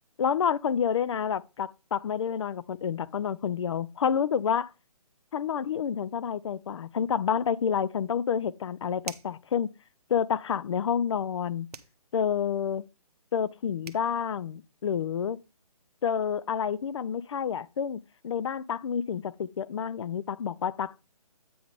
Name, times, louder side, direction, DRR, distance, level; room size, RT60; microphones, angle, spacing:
voice 1, 0.2-4.7 5.3-9.7 10.1-11.7 12.1-12.9 13.3-15.4 16.0-21.0, left 7 dB, 50° left, 0.4 m, -29 dB
sound 1, 9.0-9.4 11.7-12.0 13.5-13.6 13.8-14.1, right 5 dB, 75° right, 0.8 m, -42 dB
8.5 x 3.8 x 4.9 m
hypercardioid pair, 150°, 20 cm